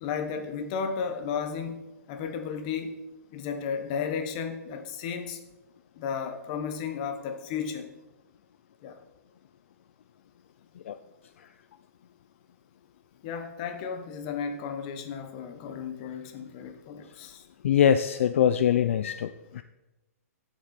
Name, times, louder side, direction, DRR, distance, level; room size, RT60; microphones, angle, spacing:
voice 1, 0.0-1.8 2.1-2.9 3.3-5.4 6.0-7.9 8.8-9.0 13.2-17.5, left 6 dB, 30° left, 8 dB, 0.9 m, -34 dB
voice 2, 17.6-19.6, left 9 dB, 50° left, 12 dB, 0.4 m, -23 dB
10.0 x 7.9 x 4.2 m, 1.0 s
hypercardioid pair, 170°, 9 cm